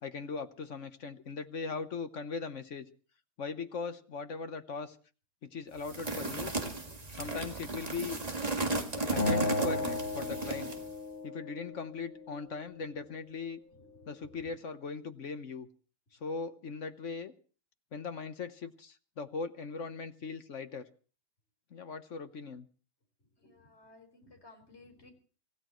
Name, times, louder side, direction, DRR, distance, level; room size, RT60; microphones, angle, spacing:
voice 1, 0.0-2.9 3.4-5.0 5.4-6.5 7.1-8.2 8.9-10.7 11.2-13.6 14.1-15.7 16.2-17.3 17.9-20.9 21.7-22.7, left 4 dB, 50° left, 9 dB, 1.1 m, -39 dB
sound 1, 5.8-10.9, right 3 dB, 20° right, 1.7 m, -35 dB
Acoustic guitar, 9.2-12.4, left 3 dB, 70° left, 2.9 m, -35 dB
voice 2, 23.4-25.1, left 2 dB, 30° left, 3 dB, 4.9 m, -57 dB
26.0 x 16.0 x 3.1 m, 0.39 s
omnidirectional pair, 2.1 m